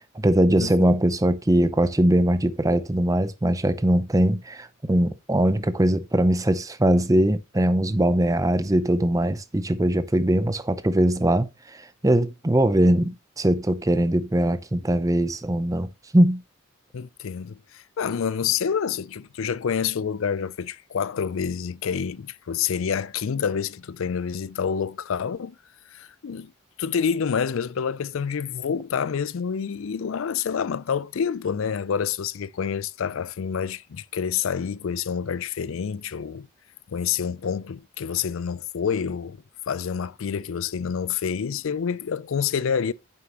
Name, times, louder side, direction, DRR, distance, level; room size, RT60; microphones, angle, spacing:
voice 1, 0.2-16.4, right 1 dB, 15° right, 0.6 m, -21 dB
voice 2, 16.9-25.6 25.9-26.5 26.8-36.5 36.9-39.4 39.7-42.9, left 7 dB, 65° left, 0.4 m, -28 dB
9.0 x 6.8 x 2.9 m
head